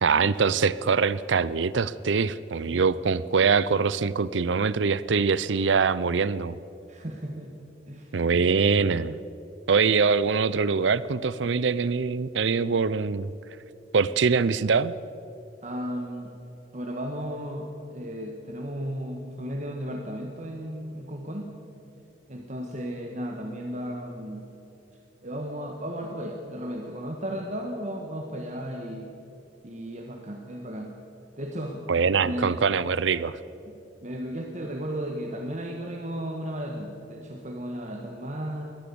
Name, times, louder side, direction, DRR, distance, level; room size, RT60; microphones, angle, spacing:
voice 1, 0.0-6.6 8.1-9.2 9.7-13.3 13.9-14.9 31.9-33.4, right 5 dB, 80° right, 17 dB, 0.6 m, -23 dB
voice 2, 6.9-7.5 7.9-8.2 15.6-16.3 16.7-21.5 22.3-24.5 25.2-29.1 29.6-30.9 31.4-31.8 32.2-32.6 33.6-33.7 34.0-38.8, equal, 40° right, 2 dB, 1.5 m, -34 dB
22.5 x 18.0 x 7.0 m, 3.0 s
head